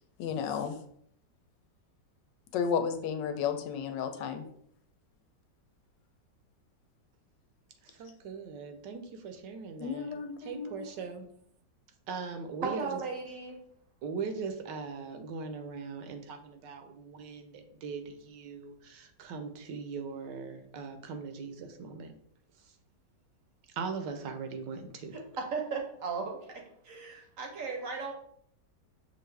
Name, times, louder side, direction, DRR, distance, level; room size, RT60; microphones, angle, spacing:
voice 1, 0.2-0.8 2.5-4.4 9.8-10.8, left 7 dB, 85° left, 7 dB, 1.3 m, -32 dB
voice 2, 7.8-11.3 12.1-13.0 14.0-22.2 23.7-25.2, right 5 dB, 80° right, 6 dB, 1.3 m, -40 dB
voice 3, 12.6-13.6 25.5-26.4 26.8-28.1, right 5 dB, 60° right, 1 dB, 1.0 m, -35 dB
6.2 x 2.5 x 3.3 m, 0.68 s
omnidirectional pair, 1.9 m